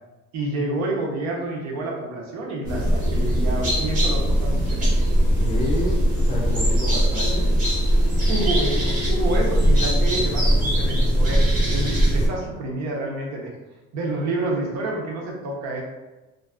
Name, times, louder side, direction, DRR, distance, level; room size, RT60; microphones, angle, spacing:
voice 1, 0.3-5.2 8.3-11.4 11.7-13.5 13.9-15.8, right 2 dB, 65° right, -1 dB, 0.7 m, -28 dB
Great Tit, 2.6-12.3, equal, 30° right, 0.8 m, -20 dB
voice 2, 5.2-7.5, left 1 dB, 20° left, -4 dB, 0.3 m, -29 dB
2.5 x 2.4 x 2.3 m, 1.1 s
cardioid pair, 170°, 29 cm